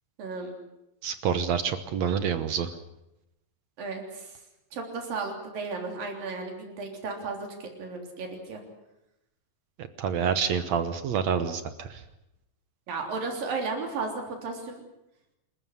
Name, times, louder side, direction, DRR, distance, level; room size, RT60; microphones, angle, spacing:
voice 1, 0.2-0.5 3.8-4.4 4.7-8.6 12.9-14.8, right 4 dB, 80° right, 3 dB, 5.2 m, -34 dB
voice 2, 1.0-2.7 10.0-12.0, right 7 dB, 65° right, 10 dB, 2.1 m, -27 dB
27.5 x 14.5 x 9.7 m, 0.88 s
omnidirectional pair, 4.0 m